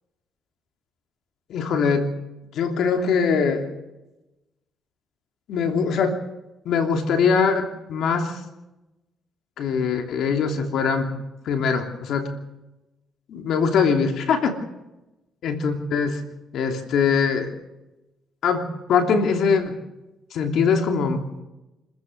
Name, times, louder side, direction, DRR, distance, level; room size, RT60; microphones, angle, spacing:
voice 1, 1.5-2.1 2.5-3.7 5.5-6.2 6.6-8.4 9.6-11.1 11.4-12.3 13.3-14.5 15.4-16.2 16.5-17.5 18.4-19.8 20.3-21.4, left 5 dB, 75° left, 5 dB, 2.9 m, -22 dB
26.5 x 14.5 x 6.6 m, 1.0 s
cardioid pair, 90°, 0 cm